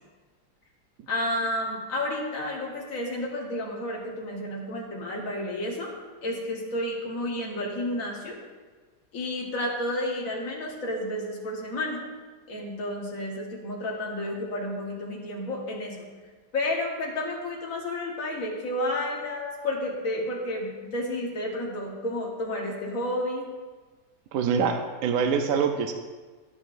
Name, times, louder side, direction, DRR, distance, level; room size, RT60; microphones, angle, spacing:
voice 1, 1.1-5.9 6.2-8.4 9.1-12.0 12.5-16.0 16.5-23.5, left 1 dB, 50° left, -2 dB, 1.7 m, -31 dB
voice 2, 24.3-25.9, right 6 dB, 70° right, 6 dB, 0.9 m, -25 dB
10.5 x 8.6 x 2.5 m, 1.4 s
omnidirectional pair, 1.9 m